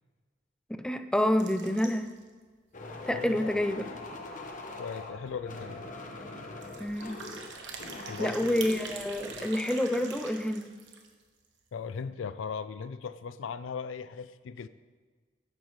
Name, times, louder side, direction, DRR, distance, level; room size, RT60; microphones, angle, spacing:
voice 1, 0.8-2.1 3.1-3.9 6.8-7.2 8.2-10.7, left 1 dB, 5° left, 8 dB, 0.4 m, -28 dB
sound 1, 1.3-2.3 2.7-2.8 3.0-3.1 3.6-3.7 4.9-5.0 5.2-5.5 6.5-11.2, right 5 dB, 70° right, 1.2 m, -44 dB
sound 2, 2.7-9.4, left 2 dB, 45° left, 1.0 m, -43 dB
voice 2, 3.1-3.5 4.8-5.9 8.1-8.5 11.7-14.7, left 6 dB, 85° left, 14 dB, 0.4 m, -38 dB
11.5 x 8.9 x 3.2 m, 1.5 s
head